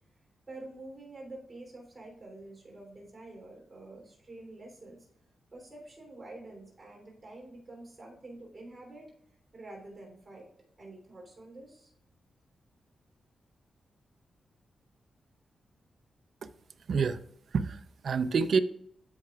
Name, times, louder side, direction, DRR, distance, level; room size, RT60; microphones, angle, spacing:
voice 1, 0.5-5.0 5.5-9.1 9.5-10.5 10.8-11.9, right 2 dB, 25° right, -2 dB, 3.1 m, -47 dB
voice 2, 16.9-17.2 17.5-18.6, right 5 dB, 55° right, 11 dB, 0.5 m, -27 dB
13.0 x 5.7 x 2.3 m, 0.72 s
wide cardioid pair, 160°, 0 cm